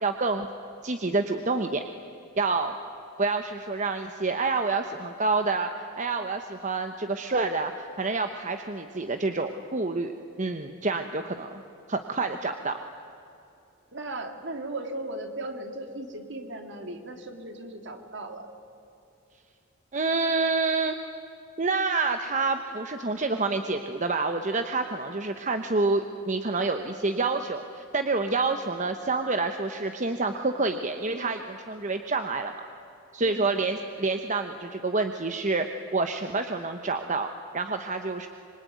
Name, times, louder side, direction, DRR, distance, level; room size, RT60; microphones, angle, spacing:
voice 1, 0.0-0.5 0.8-1.8 2.4-2.7 3.2-5.7 6.0-10.1 10.4-11.6 11.9-12.8 19.9-20.9 21.6-32.5 33.1-35.7 35.9-38.3, right 3 dB, 35° right, 6 dB, 1.1 m, -28 dB
voice 2, 13.9-18.5 33.2-33.5, right 2 dB, 55° right, 5 dB, 2.7 m, -37 dB
26.0 x 24.5 x 9.4 m, 2.7 s
head